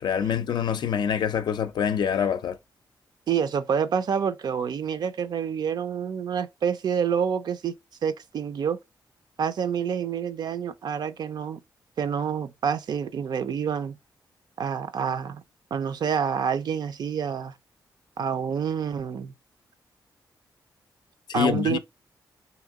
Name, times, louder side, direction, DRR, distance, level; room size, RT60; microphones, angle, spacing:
voice 1, 0.0-2.6 21.3-21.8, left 8 dB, 70° left, 0.5 m, -25 dB
voice 2, 3.3-7.8 8.0-8.8 9.4-11.6 12.0-14.0 14.6-15.4 15.7-17.5 18.2-19.3 21.3-21.8, right 7 dB, 65° right, 0.4 m, -27 dB
3.5 x 2.9 x 3.5 m
wide cardioid pair, 130°, 8 cm